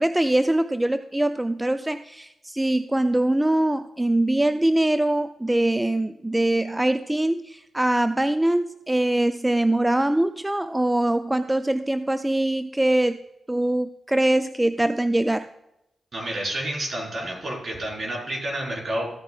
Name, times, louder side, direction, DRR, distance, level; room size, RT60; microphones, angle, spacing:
voice 1, 0.0-13.2 13.5-15.5, right 1 dB, 15° right, 11 dB, 0.4 m, -23 dB
voice 2, 16.1-19.1, right 1 dB, 55° right, -2 dB, 4.3 m, -29 dB
14.5 x 9.5 x 2.4 m, 0.87 s
supercardioid pair, 40°, 0 cm